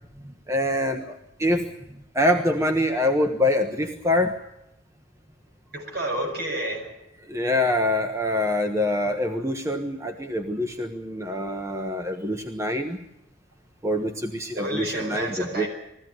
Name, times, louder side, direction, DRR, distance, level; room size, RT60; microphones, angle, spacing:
voice 1, 0.5-1.7 2.1-4.4 7.3-13.0 13.8-15.7, left 1 dB, 15° right, 5 dB, 1.2 m, -25 dB
voice 2, 5.7-6.9 14.6-15.7, right 1 dB, 55° right, 3 dB, 7.5 m, -30 dB
21.5 x 16.0 x 9.4 m, 0.85 s
head